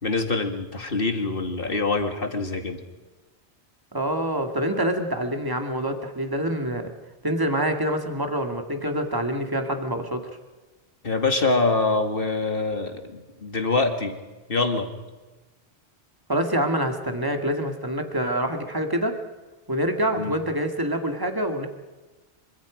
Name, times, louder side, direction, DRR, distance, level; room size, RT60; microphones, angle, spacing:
voice 1, 0.0-2.8 11.0-14.2 14.5-14.9 20.1-20.4, left 3 dB, 55° left, 6 dB, 2.4 m, -25 dB
voice 2, 3.9-6.9 7.2-10.2 16.3-19.2 19.7-21.7, right 1 dB, 20° right, 5 dB, 2.3 m, -26 dB
27.0 x 25.0 x 5.2 m, 1.2 s
omnidirectional pair, 1.1 m